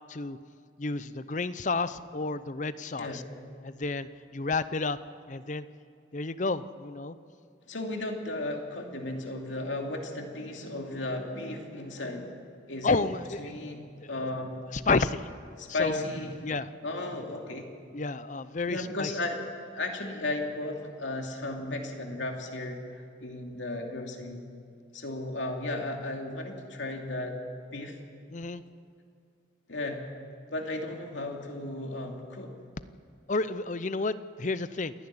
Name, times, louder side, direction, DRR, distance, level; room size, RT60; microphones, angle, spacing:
voice 1, 0.8-3.2 3.6-5.0 5.3-5.7 6.1-7.2 12.8-13.4 14.0-14.3 14.7-15.3 15.7-16.0 16.4-16.7 17.9-19.1 28.3-28.6 33.3-34.9, left 3 dB, 40° left, 14 dB, 0.6 m, -31 dB
voice 2, 7.7-12.3 12.7-13.0 13.4-13.8 14.1-14.6 15.6-16.5 16.8-17.7 18.7-24.5 24.9-27.4 27.7-28.0 29.7-30.0 30.5-32.5, left 2 dB, 85° left, 2 dB, 2.7 m, -35 dB
28.0 x 11.0 x 9.8 m, 2.3 s
head